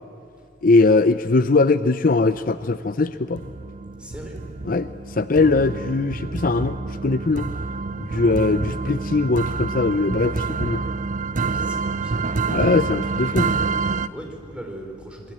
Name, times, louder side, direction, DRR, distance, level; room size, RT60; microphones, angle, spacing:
voice 1, 0.6-3.4 4.7-7.5 8.0-10.8 12.5-13.6, left 3 dB, 50° left, 12 dB, 0.6 m, -20 dB
sound 1, 2.4-2.9 3.4-14.1, right 4 dB, 45° right, 0.6 m, -27 dB
voice 2, 4.0-4.4 8.1-8.4 11.5-12.2 12.6-12.7 12.9-15.3, right 1 dB, 5° right, 2 dB, 3.8 m, -40 dB
26.5 x 21.5 x 8.9 m, 2.3 s
head